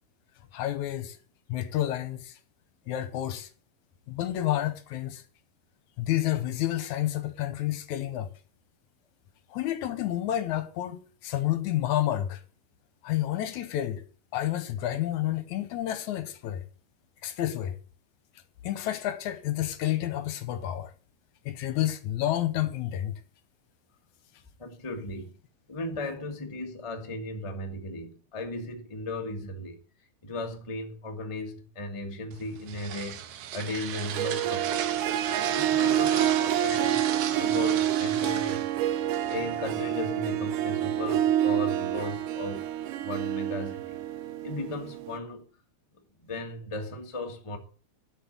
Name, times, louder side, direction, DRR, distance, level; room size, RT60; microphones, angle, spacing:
voice 1, 0.5-1.2 1.5-2.4 2.9-3.5 4.1-5.2 6.0-8.3 9.5-12.4 13.0-14.0 14.3-16.6 17.2-17.8 18.6-20.9 21.5-23.2, left 13 dB, 75° left, 2.2 m, -30 dB
voice 2, 24.6-25.3 25.7-29.8 30.2-33.2 33.5-35.0 35.5-37.0 37.4-38.7 39.3-42.7 43.0-44.0 44.4-45.4 46.2-47.6, left 2 dB, 20° left, 0.8 m, -36 dB
sound 1, 32.3-39.8, right 10 dB, 70° right, 2.3 m, -36 dB
Harp, 34.0-45.2, right 11 dB, 90° right, 2.4 m, -28 dB
12.0 x 6.2 x 7.4 m
omnidirectional pair, 3.6 m